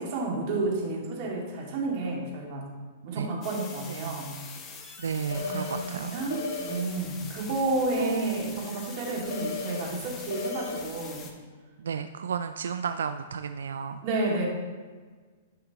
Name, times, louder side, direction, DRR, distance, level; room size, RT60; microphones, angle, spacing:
voice 1, 0.0-2.7 3.1-4.3 5.3-11.3 14.0-14.5, right 2 dB, 45° right, -2 dB, 2.2 m, -31 dB
sound 1, 3.4-11.3, left 5 dB, 20° left, 0.9 m, -44 dB
voice 2, 3.9-4.2 5.0-6.2 8.0-8.6 11.8-14.0, right 6 dB, 90° right, 9 dB, 0.3 m, -33 dB
sound 2, 5.3-5.8 6.3-6.8 9.3-9.8 10.3-10.8, left 4 dB, 75° left, 1.3 m, -34 dB
11.5 x 5.5 x 3.0 m, 1.5 s
hypercardioid pair, 145°, 0 cm